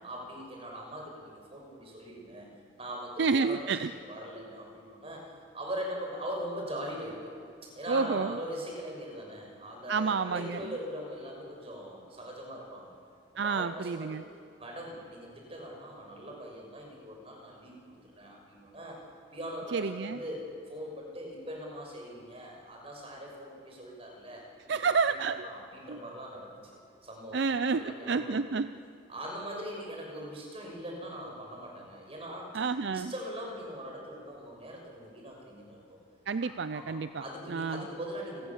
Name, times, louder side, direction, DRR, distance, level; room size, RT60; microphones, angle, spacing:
voice 1, 0.0-2.5 2.8-3.8 4.0-7.3 7.6-12.9 13.4-14.2 14.6-19.0 19.3-28.4 29.1-32.5 32.9-36.0 36.7-38.5, equal, 30° right, 0 dB, 6.1 m, -41 dB
voice 2, 3.2-3.9 7.9-8.4 9.9-10.6 13.4-14.2 19.7-20.2 24.7-25.5 25.9-26.0 27.3-28.7 32.5-33.1 36.3-37.9, right 5 dB, 60° right, 12 dB, 0.5 m, -29 dB
28.5 x 19.0 x 7.3 m, 2.3 s
head